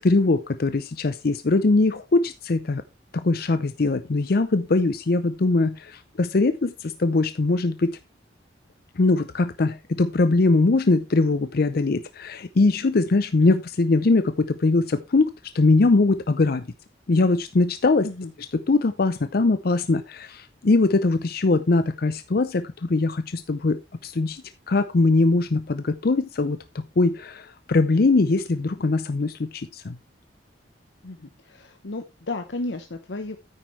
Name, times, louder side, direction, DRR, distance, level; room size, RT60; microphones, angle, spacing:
voice 1, 0.0-2.8 3.1-8.0 9.0-16.7 17.1-18.1 18.7-30.0, left 3 dB, 55° left, 0.6 m, -21 dB
voice 2, 31.0-33.4, left 2 dB, 80° left, 0.9 m, -33 dB
9.5 x 9.0 x 3.2 m
head